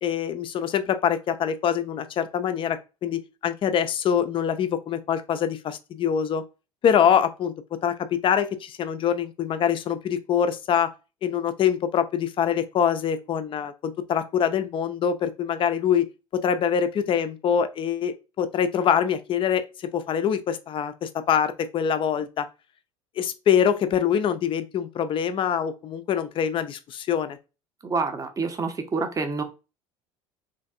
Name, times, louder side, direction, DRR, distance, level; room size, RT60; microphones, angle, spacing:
voice 1, 0.0-6.4 6.8-10.9 11.2-16.1 16.3-22.5 23.2-27.4, left 8 dB, 30° left, 0.4 m, -24 dB
voice 2, 27.8-29.4, right 4 dB, 20° right, 0.6 m, -27 dB
3.3 x 2.5 x 2.4 m
figure-of-eight pair, 65°, 17 cm